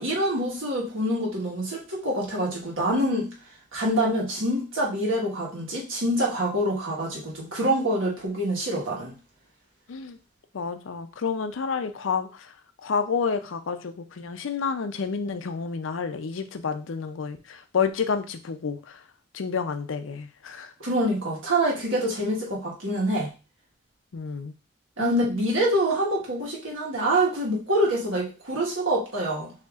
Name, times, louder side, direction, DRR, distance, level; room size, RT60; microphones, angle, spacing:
voice 1, 0.0-3.3 3.7-9.1 20.8-23.3 25.0-29.5, right 1 dB, 90° right, -3 dB, 1.4 m, -26 dB
voice 2, 10.5-12.5 12.8-19.0 19.3-20.7 24.1-24.5 25.0-25.3, left 5 dB, 80° left, 9 dB, 0.5 m, -29 dB
6.6 x 2.8 x 2.4 m, 0.33 s
head